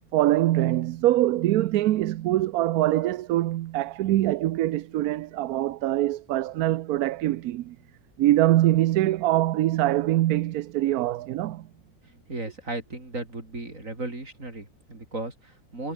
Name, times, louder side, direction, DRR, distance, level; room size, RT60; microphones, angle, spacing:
voice 1, 0.1-7.8 8.2-11.7, right 14 dB, 80° right, 1.1 m, -23 dB
voice 2, 12.0-15.9, right 2 dB, 60° right, 5.7 m, -36 dB
omnidirectional pair, 1.6 m